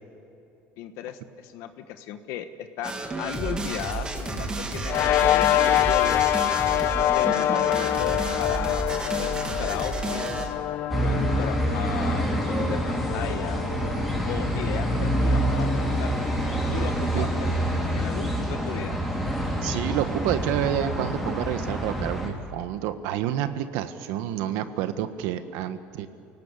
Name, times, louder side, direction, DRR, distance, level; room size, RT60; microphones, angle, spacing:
voice 1, 0.8-6.2 7.1-8.9 9.2-10.5 11.0-13.7 14.3-16.1 16.7-19.0, left 10 dB, 75° left, 8 dB, 1.4 m, -36 dB
sound 1, 2.8-10.7, right 3 dB, 20° right, 2.4 m, -31 dB
sound 2, 4.9-17.6, left 13 dB, 55° left, 0.8 m, -27 dB
sound 3, 10.9-22.3, right 1 dB, ahead, 4.0 m, -26 dB
voice 2, 19.6-26.1, right 11 dB, 85° right, 10 dB, 1.5 m, -29 dB
29.0 x 18.0 x 8.3 m, 2.8 s
cardioid pair, 150°, 5 cm